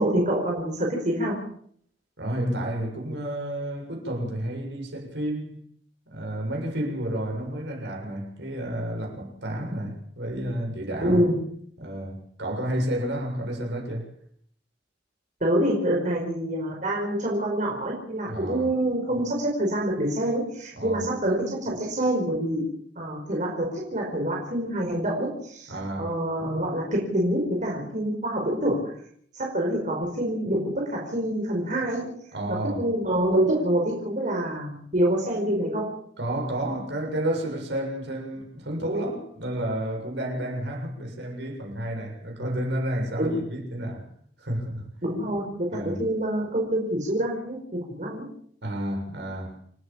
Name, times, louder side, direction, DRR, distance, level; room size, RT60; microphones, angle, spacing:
voice 1, 0.0-1.4 11.0-11.4 15.4-22.6 22.9-28.9 29.3-32.2 32.5-35.9 43.2-43.4 45.0-48.3, right 1 dB, 45° right, 5.2 m, -26 dB
voice 2, 2.2-5.6 6.1-11.2 11.8-14.1 18.3-18.7 20.8-21.1 25.7-26.2 32.3-32.9 36.2-44.1 44.4-44.8 45.7-46.0 48.6-49.6, right 1 dB, 70° right, 7.2 m, -31 dB
29.0 x 14.0 x 7.3 m
head